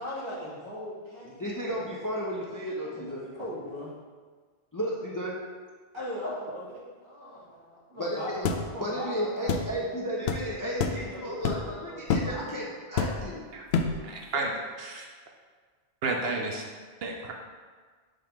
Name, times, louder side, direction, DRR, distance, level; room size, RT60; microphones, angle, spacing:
voice 1, 0.0-1.8 3.0-3.9 5.9-9.9 11.1-11.5 11.8-12.3, left 1 dB, 25° right, -7 dB, 1.7 m, -39 dB
voice 2, 1.2-3.3 4.7-5.4 8.0-8.5 8.8-13.4, equal, 20° left, -4 dB, 0.6 m, -33 dB
sound 1, 8.5-8.6 9.5-9.7 10.3-10.4 10.8-11.0 11.4-11.7 12.1-12.3 13.0-13.3 13.7-14.0, left 5 dB, 80° left, 0.8 m, -27 dB
voice 3, 14.0-15.1 16.0-16.6 17.0-17.3, right 3 dB, 70° right, 1 dB, 0.8 m, -32 dB
5.1 x 3.7 x 5.8 m, 1.5 s
omnidirectional pair, 1.1 m